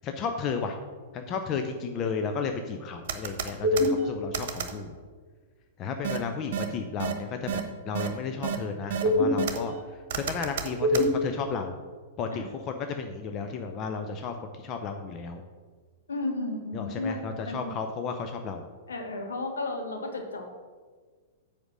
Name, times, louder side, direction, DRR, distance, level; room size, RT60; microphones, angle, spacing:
voice 1, 0.0-0.8 1.1-5.0 5.8-11.7 12.2-15.4 16.7-18.7, left 5 dB, 30° left, 5 dB, 0.7 m, -33 dB
sound 1, 3.1-3.9 4.3-4.7 6.0-6.2 6.5-6.6 7.0-7.1 7.5-7.6 7.9-8.1 8.4-8.6 8.9-9.6 10.1-11.1, right 1 dB, 55° right, 1.2 m, -25 dB
voice 2, 16.1-17.8 18.9-20.5, left 2 dB, 70° left, 3 dB, 1.7 m, -33 dB
8.0 x 5.2 x 7.4 m, 1.5 s
figure-of-eight pair, 105°, 0 cm